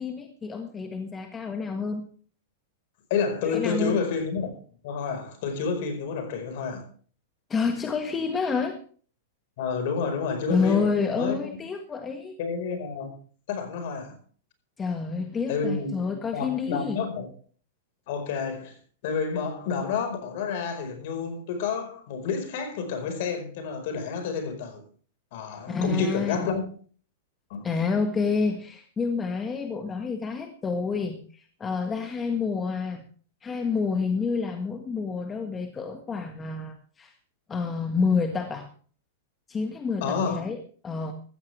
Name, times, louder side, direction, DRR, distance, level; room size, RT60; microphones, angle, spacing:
voice 1, 0.0-2.1 3.4-4.0 7.5-8.8 10.5-12.4 14.8-17.0 25.7-26.6 27.6-33.0 33.4-37.1 37.5-38.7 39.5-40.6 40.8-41.1, left 5 dB, 20° left, 1.6 m, -28 dB
voice 2, 3.1-4.5 4.8-6.8 9.6-10.8 11.1-11.4 12.4-13.1 13.5-14.2 15.5-15.9 16.3-17.3 18.1-18.7 19.0-24.8 25.3-26.6 27.5-27.7 40.0-40.4, left 5 dB, 60° left, 4.8 m, -29 dB
15.0 x 14.5 x 3.4 m
hypercardioid pair, 135°, 0 cm